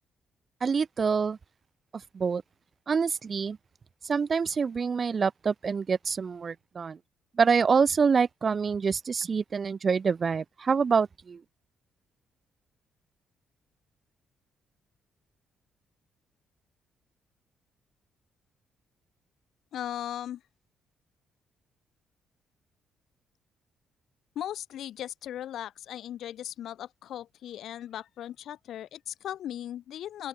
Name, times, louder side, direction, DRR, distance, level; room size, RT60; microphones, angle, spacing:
voice 1, 0.6-1.4 2.1-2.4 2.9-3.6 4.0-7.0 7.4-11.4, right 5 dB, 30° right, 0.3 m, -26 dB
voice 2, 19.7-20.4 24.4-30.3, left 11 dB, 65° left, 7.5 m, -38 dB
open air
cardioid pair, 145°, 0 cm